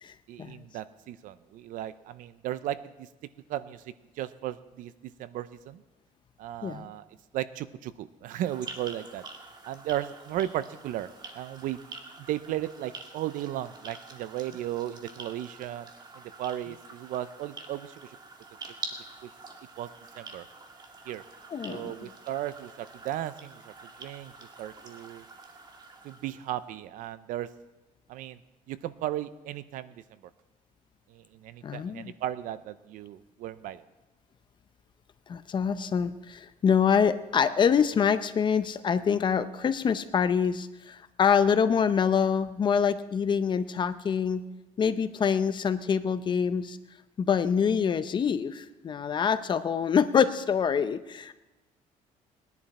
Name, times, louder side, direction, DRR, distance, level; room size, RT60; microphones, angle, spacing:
voice 1, 0.3-3.1 3.5-5.8 6.4-7.0 7.3-9.2 9.6-11.1 11.3-11.8 12.2-15.9 16.1-18.2 19.2-19.3 19.8-19.9 20.1-20.5 21.1-21.2 21.7-23.7 24.0-24.3 24.6-25.3 26.0-27.5 28.1-28.4 28.7-30.0 31.1-33.8, right 12 dB, 70° right, 14 dB, 0.7 m, -35 dB
sound 1, 8.2-26.7, right 3 dB, 30° right, 1.9 m, -46 dB
voice 2, 21.5-22.1 31.6-32.1 35.3-44.4 44.8-46.8 47.2-51.3, left 7 dB, 35° left, 12 dB, 0.7 m, -25 dB
20.0 x 11.0 x 4.3 m, 1.1 s
cardioid pair, 135°, 14 cm